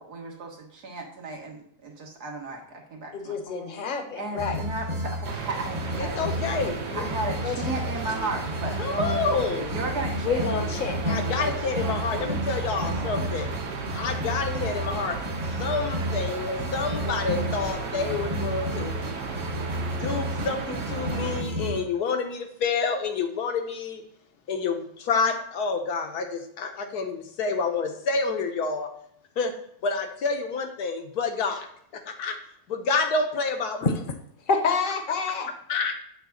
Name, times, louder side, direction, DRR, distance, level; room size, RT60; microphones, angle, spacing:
voice 1, 0.0-3.7 4.1-6.5 6.9-12.4 12.7-13.8, right 2 dB, 80° right, 0 dB, 2.1 m, -36 dB
voice 2, 3.1-4.6 7.4-7.8 10.2-11.0 19.3-19.4 33.8-33.9 34.5-35.5, left 4 dB, 40° left, 6 dB, 0.9 m, -28 dB
sound 1, 4.4-21.8, equal, 30° right, 0.9 m, -32 dB
sound 2, 5.2-21.4, right 4 dB, 55° right, 1.2 m, -35 dB
voice 3, 6.0-7.0 8.8-9.7 11.1-13.5 13.9-15.2 15.4-19.0 20.0-24.0 24.5-28.9 29.4-29.5 29.8-31.7 31.9-32.4 32.7-33.9 35.7-35.9, left 4 dB, 80° left, 5 dB, 1.5 m, -28 dB
8.0 x 3.5 x 6.4 m, 0.67 s
omnidirectional pair, 1.7 m